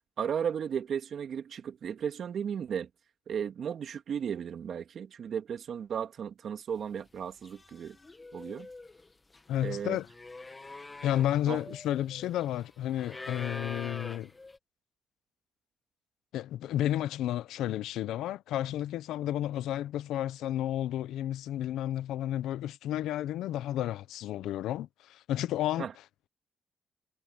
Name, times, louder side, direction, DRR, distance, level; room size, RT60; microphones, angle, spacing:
voice 1, 0.2-2.9 3.3-8.0 8.3-8.7 9.6-10.0 11.5-11.6 25.8-25.9, right 8 dB, 60° right, 2.8 m, -35 dB
sound 1, 7.0-7.2 7.4-14.6, left 3 dB, 20° left, 2.0 m, -45 dB
voice 2, 9.5-10.1 11.0-14.3 16.3-25.9, left 12 dB, 85° left, 0.8 m, -32 dB
cardioid pair, 90°, 0 cm